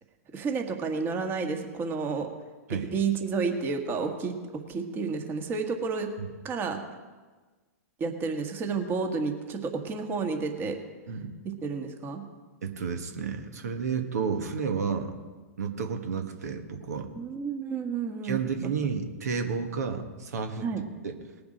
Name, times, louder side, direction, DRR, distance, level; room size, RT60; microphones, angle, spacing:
voice 1, 0.3-2.3 2.9-4.4 4.7-6.1 6.4-6.8 8.0-10.8 11.6-12.2 17.1-18.4 18.6-18.7 20.6-20.8, right 5 dB, 25° right, 4 dB, 1.5 m, -30 dB
voice 2, 12.6-15.1 15.6-17.1 18.2-20.7 21.0-21.1, right 5 dB, 70° right, 5 dB, 1.5 m, -31 dB
19.5 x 7.0 x 5.1 m, 1.3 s
hypercardioid pair, 120°, 9 cm